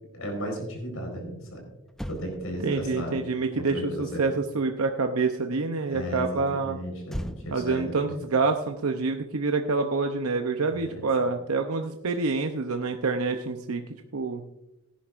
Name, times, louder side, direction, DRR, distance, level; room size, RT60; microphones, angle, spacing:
voice 1, 0.1-1.6 2.1-3.2 3.6-4.3 5.9-8.2 10.7-11.0, equal, 75° left, 2 dB, 4.5 m, -35 dB
Motor vehicle (road), 1.9-5.4 7.1-9.7 9.9-10.2, equal, ahead, 0.4 m, -42 dB
voice 2, 2.6-6.8 7.5-13.8 14.1-14.4, right 4 dB, 85° right, 5 dB, 0.7 m, -27 dB
17.0 x 10.5 x 2.5 m, 0.90 s
head